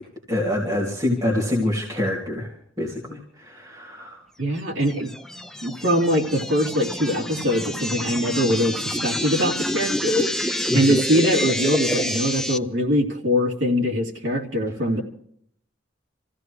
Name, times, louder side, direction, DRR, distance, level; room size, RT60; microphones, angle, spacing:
voice 1, 0.3-2.5 2.8-4.2 10.7-11.0, left 1 dB, 20° right, -4 dB, 2.8 m, -25 dB
voice 2, 4.4-5.1 5.6-15.0, equal, 65° right, -1 dB, 2.9 m, -22 dB
sound 1, 4.9-12.6, left 1 dB, 5° left, 0.5 m, -28 dB
27.5 x 15.5 x 3.2 m, 0.67 s
head